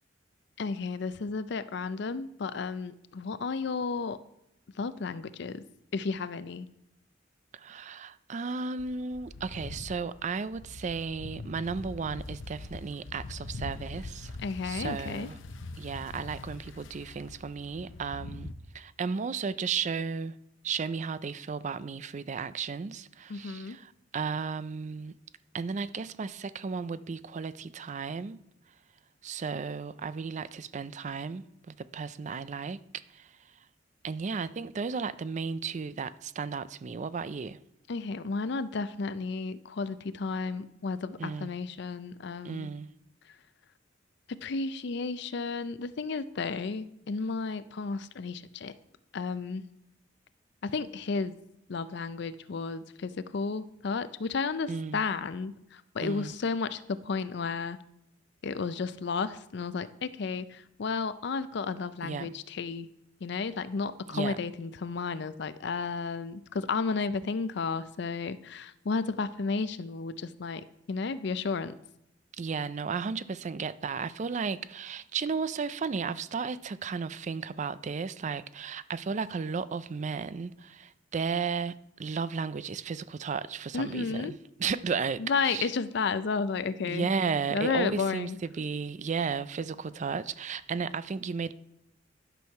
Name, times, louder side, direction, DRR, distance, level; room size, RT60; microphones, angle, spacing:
voice 1, 0.6-4.2 4.8-5.6 5.9-6.7 14.4-15.3 23.3-23.8 37.9-42.7 44.3-48.7 49.1-49.6 50.6-51.4 51.7-57.8 58.4-62.9 63.2-71.7 83.7-84.3 85.2-87.1 87.5-88.4, left 4 dB, 65° left, 0.5 m, -33 dB
voice 2, 7.5-14.3 14.6-15.4 15.8-20.3 20.6-25.1 25.5-28.4 29.2-33.3 34.0-37.6 41.2-41.5 42.4-42.9 54.7-55.0 56.0-56.3 62.0-62.3 64.1-64.4 72.4-81.7 82.0-84.3 84.6-85.7 86.8-91.5, right 5 dB, 40° right, 0.4 m, -34 dB
sound 1, 8.8-18.5, left 2 dB, 90° left, 0.8 m, -43 dB
11.5 x 6.3 x 5.7 m
head